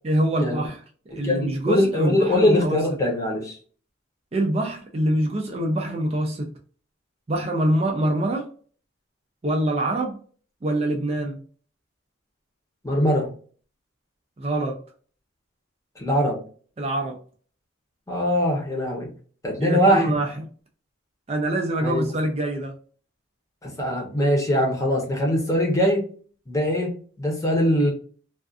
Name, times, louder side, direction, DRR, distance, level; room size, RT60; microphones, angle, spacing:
voice 1, 0.0-0.8 1.1-2.8 4.3-6.5 7.3-8.5 9.4-10.2 10.6-11.4 14.4-14.8 16.8-17.2 19.6-20.3 21.3-22.8, right 1 dB, 30° right, 1 dB, 0.4 m, -24 dB
voice 2, 1.1-3.6 12.8-13.3 16.0-16.4 18.1-19.1 19.4-20.1 21.8-22.1 23.6-26.0 26.5-26.9 27.2-27.9, equal, 15° left, -1 dB, 0.7 m, -22 dB
2.5 x 2.3 x 2.4 m, 0.43 s
head